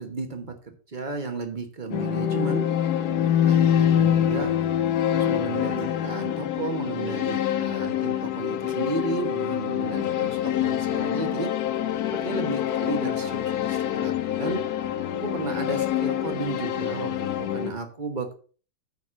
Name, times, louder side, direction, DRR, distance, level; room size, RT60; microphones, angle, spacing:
voice 1, 0.0-2.6 3.0-4.5 5.1-11.5 12.0-14.6 15.1-18.3, right 3 dB, 30° right, 5 dB, 1.1 m, -33 dB
sound 1, 1.9-17.7, left 10 dB, 65° left, 1.1 m, -25 dB
9.1 x 4.2 x 6.2 m, 0.40 s
omnidirectional pair, 2.0 m